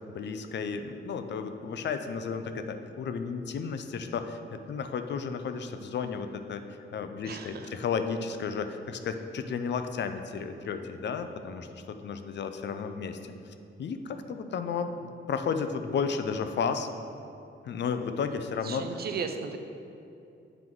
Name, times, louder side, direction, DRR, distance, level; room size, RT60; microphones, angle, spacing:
voice 1, 0.1-6.6 6.9-13.3 13.8-16.9 17.6-18.8, left 6 dB, 60° left, 8 dB, 0.5 m, -33 dB
voice 2, 7.2-7.7 18.6-19.6, right 5 dB, 50° right, 6 dB, 0.5 m, -35 dB
7.8 x 4.6 x 3.7 m, 2.7 s
wide cardioid pair, 125°, 21 cm